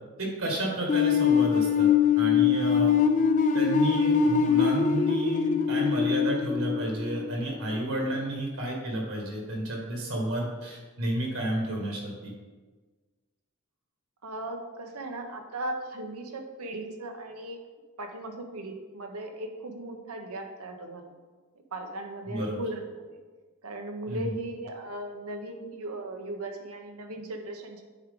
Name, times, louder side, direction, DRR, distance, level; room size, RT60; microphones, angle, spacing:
voice 1, 0.2-3.0 3.5-12.3 22.3-22.6 24.1-24.3, right 1 dB, 70° right, -1 dB, 1.8 m, -31 dB
sound 1, 0.9-7.8, left 7 dB, 35° left, 0.4 m, -23 dB
voice 2, 14.2-17.6 18.0-21.1 21.7-22.9 23.6-27.8, right 1 dB, 85° right, 4 dB, 0.9 m, -37 dB
9.2 x 4.8 x 3.8 m, 1.3 s
head